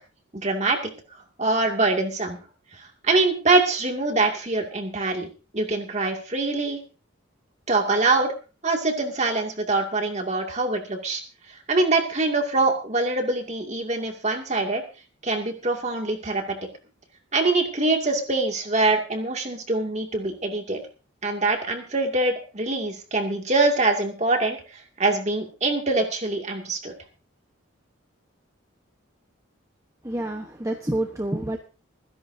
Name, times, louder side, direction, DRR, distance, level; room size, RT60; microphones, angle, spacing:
voice 1, 0.3-0.8 1.4-2.4 2.8-6.8 7.7-8.3 8.6-11.2 11.7-14.8 15.2-16.6 17.3-20.8 21.2-26.9, right 3 dB, 35° right, 3 dB, 2.4 m, -24 dB
voice 2, 30.0-31.6, right 1 dB, 15° right, 3 dB, 1.1 m, -28 dB
26.0 x 10.5 x 2.7 m, 0.34 s
head